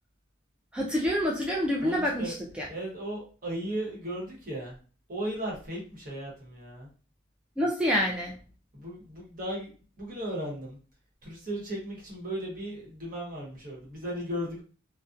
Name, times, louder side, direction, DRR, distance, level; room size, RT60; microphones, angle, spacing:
voice 1, 0.7-2.7 7.6-8.3, equal, 5° right, -3 dB, 0.3 m, -27 dB
voice 2, 1.8-2.3 2.7-4.8 5.1-6.9 8.7-10.8 11.2-14.6, right 1 dB, 45° right, -2 dB, 1.0 m, -36 dB
2.4 x 2.0 x 2.5 m, 0.37 s
head